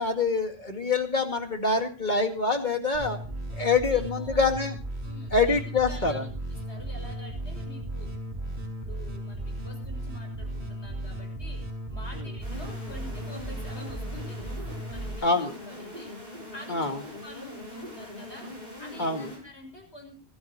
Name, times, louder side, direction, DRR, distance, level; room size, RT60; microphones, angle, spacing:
voice 1, 0.0-3.2 3.6-4.8 5.3-6.2 15.2-15.6 16.7-17.0 19.0-19.3, left 3 dB, 45° left, 5 dB, 2.3 m, -25 dB
sound 1, 2.9-15.2, right 1 dB, 70° right, 3.5 m, -36 dB
voice 2, 3.8-4.5 5.0-8.1 8.6-14.5 14.9-16.1 16.5-18.5 18.8-20.1, equal, 80° left, 3 dB, 6.6 m, -47 dB
sound 2, 12.4-19.4, left 1 dB, 40° right, 7.7 m, -42 dB
25.5 x 12.5 x 3.0 m, 0.35 s
omnidirectional pair, 1.1 m